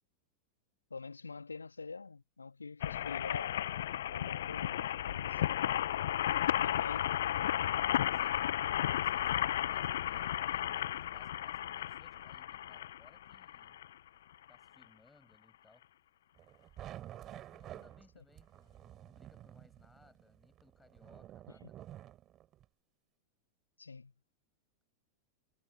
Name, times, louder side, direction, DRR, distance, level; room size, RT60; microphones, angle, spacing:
voice 1, 0.9-3.8 4.1-5.4 6.6-7.2 23.8-24.1, left 4 dB, 75° left, 1.9 m, -46 dB
sound 1, 2.8-13.9 14.5-14.6 14.8-14.9, left 12 dB, 60° left, 0.4 m, -34 dB
voice 2, 8.1-8.4 9.0-13.8 14.5-15.9 17.1-21.9, left 2 dB, 10° left, 6.2 m, -65 dB
sound 2, 16.4-22.6, right 12 dB, 30° right, 5.6 m, -51 dB
figure-of-eight pair, 90°, 0 cm